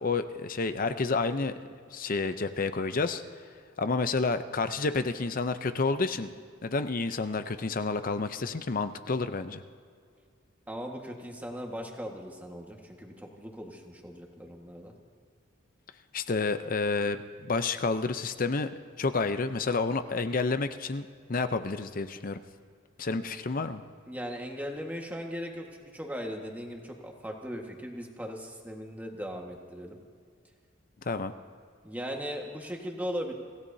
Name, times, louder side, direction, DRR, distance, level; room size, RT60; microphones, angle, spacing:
voice 1, 0.0-1.5 1.9-3.2 3.8-6.3 6.6-9.6 16.1-18.7 19.0-22.4 23.0-23.8 31.1-31.3, left 3 dB, 45° left, 10 dB, 0.6 m, -29 dB
voice 2, 10.7-14.9 24.1-30.0 31.8-33.3, equal, 10° right, 1 dB, 1.6 m, -38 dB
26.0 x 16.0 x 2.8 m, 2.1 s
head